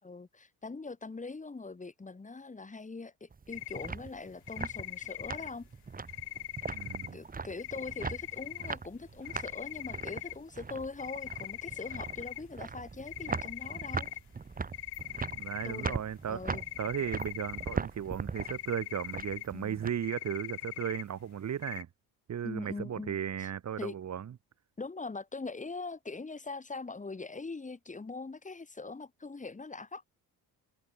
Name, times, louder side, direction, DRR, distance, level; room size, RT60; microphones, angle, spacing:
voice 1, 0.0-5.7 7.1-14.1 15.6-15.9 16.3-16.6 19.5-19.8 22.4-23.5 23.8-24.0 24.8-30.1, left 3 dB, 20° left, 5.1 m, -42 dB
sound 1, 3.3-19.9, right 4 dB, 20° right, 2.1 m, -40 dB
sound 2, 3.5-3.9 4.5-5.5 6.1-7.1 7.6-8.7 9.3-10.3 11.0-12.4 13.1-14.2 14.7-16.0 16.5-17.8 18.1-19.5 20.0-21.0 21.6-21.8, left 15 dB, 75° left, 2.6 m, -41 dB
voice 2, 6.7-7.2 15.3-21.9 22.3-24.3, right 9 dB, 45° right, 1.8 m, -36 dB
cardioid pair, 130°, 39 cm